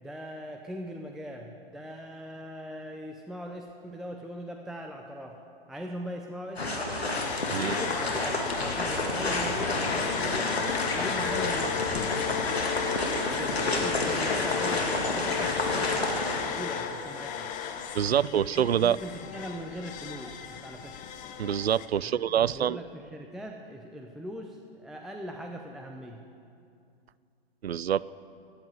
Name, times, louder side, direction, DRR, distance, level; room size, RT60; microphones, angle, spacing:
voice 1, 0.0-5.4 5.7-6.9 7.6-11.9 13.4-16.2 16.4-17.5 18.1-21.0 22.1-26.2, equal, ahead, 2 dB, 0.5 m, -40 dB
sound 1, 6.6-16.4, left 2 dB, 90° left, 2.6 m, -30 dB
sound 2, 7.1-21.9, left 8 dB, 25° left, 1.1 m, -34 dB
voice 2, 17.9-19.0 21.4-22.8 27.6-28.1, right 9 dB, 80° right, 20 dB, 0.5 m, -26 dB
14.5 x 9.8 x 9.1 m, 2.5 s
figure-of-eight pair, 120°, 31 cm